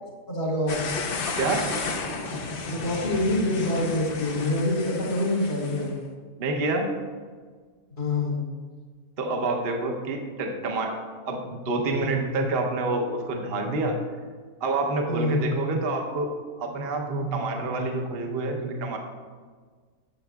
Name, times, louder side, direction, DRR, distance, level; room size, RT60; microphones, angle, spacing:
voice 1, 0.3-0.8 2.7-5.9 7.9-8.4 15.1-15.4, left 1 dB, 80° left, -4 dB, 2.5 m, -26 dB
sound 1, 0.7-5.9, left 4 dB, 50° left, 0.7 m, -33 dB
voice 2, 1.3-1.8 6.4-7.0 9.2-14.0 14.6-19.0, right 2 dB, 45° right, 2 dB, 0.9 m, -27 dB
11.5 x 7.3 x 2.3 m, 1.5 s
omnidirectional pair, 1.6 m